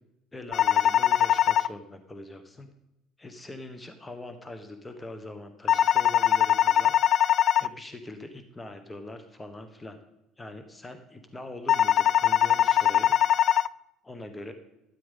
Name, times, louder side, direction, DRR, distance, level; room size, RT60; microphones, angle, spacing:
voice 1, 0.3-2.7 3.2-6.9 7.6-10.0 10.4-13.1 14.0-14.5, left 1 dB, 15° left, 8 dB, 1.4 m, -42 dB
sound 1, 0.5-1.7 5.7-7.7 11.7-13.7, left 11 dB, 50° left, 0.3 m, -21 dB
12.5 x 9.8 x 5.5 m, 0.89 s
supercardioid pair, 90°, 0 cm